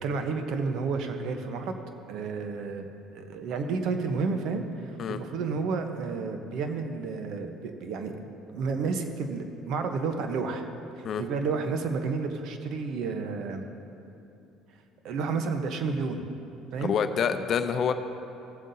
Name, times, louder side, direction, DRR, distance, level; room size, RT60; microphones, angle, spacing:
voice 1, 0.0-1.8 2.1-2.9 3.1-10.6 11.0-13.6 15.0-16.3 16.7-16.9, right 4 dB, 70° right, 6 dB, 0.9 m, -31 dB
voice 2, 16.8-17.9, left 7 dB, 50° left, 9 dB, 0.6 m, -27 dB
16.5 x 7.4 x 2.7 m, 2.9 s
supercardioid pair, 90°, 0 cm